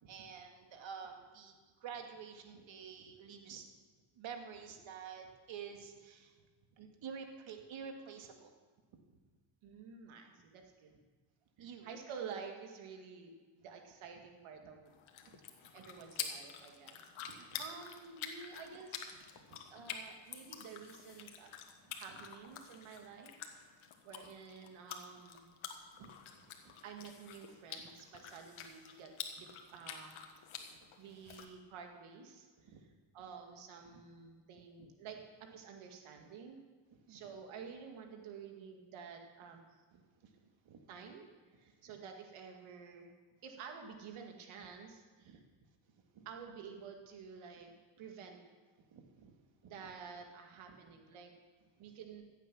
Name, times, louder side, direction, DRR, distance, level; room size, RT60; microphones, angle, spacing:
voice 1, 0.0-3.7 4.2-6.4 6.8-8.5 11.6-11.9 15.2-15.4 15.8-15.9 17.3-17.6 19.4-19.9 21.8-22.2 25.9-26.1 26.6-26.7 27.7-27.9 32.6-32.8 33.9-34.0 36.9-37.3 39.9-40.0 40.7-40.9 45.3-45.4 46.1-46.3 48.9-49.9 51.8-51.9, right 6 dB, 70° right, 4 dB, 2.1 m, -50 dB
voice 2, 9.6-10.9 11.6-14.9 15.7-19.1 19.7-21.5 21.9-23.3 24.0-25.5 26.8-29.1 29.4-30.2 31.0-32.5 33.1-36.6 37.1-39.6 40.9-41.3 41.6-43.1 43.4-45.4 46.3-48.4 49.6-51.3 51.8-52.2, right 6 dB, 85° right, 3 dB, 2.1 m, -50 dB
sound 1, 14.9-31.5, left 7 dB, 80° left, 1.6 m, -48 dB
15.0 x 8.2 x 6.2 m, 1.4 s
cardioid pair, 75°, 48 cm